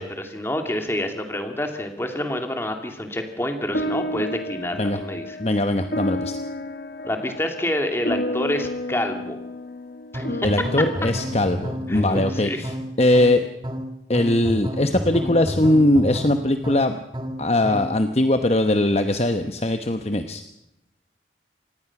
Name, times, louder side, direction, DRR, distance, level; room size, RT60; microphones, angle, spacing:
voice 1, 0.0-5.4 7.0-9.4 10.1-10.6 11.9-12.6, left 1 dB, 15° left, 5 dB, 2.5 m, -28 dB
sound 1, 3.7-12.4, left 1 dB, 55° left, 1.4 m, -32 dB
voice 2, 5.4-6.4 10.4-13.4 14.1-17.0 17.4-20.4, left 1 dB, 35° left, 7 dB, 0.9 m, -20 dB
sound 2, 10.1-18.0, equal, 25° right, 1.7 m, -30 dB
25.5 x 19.0 x 5.9 m, 0.83 s
head